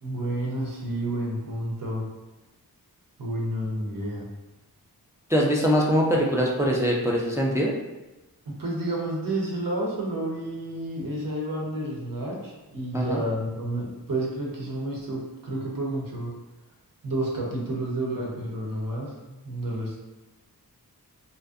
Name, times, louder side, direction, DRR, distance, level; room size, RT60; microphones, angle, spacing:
voice 1, 0.0-2.1 3.2-4.3 8.5-16.3 17.0-20.0, right 1 dB, 60° right, -2 dB, 0.7 m, -30 dB
voice 2, 5.3-7.8 12.9-13.2, equal, 10° right, -2 dB, 0.3 m, -23 dB
2.5 x 2.1 x 2.4 m, 1.1 s
wide cardioid pair, 50°, 37 cm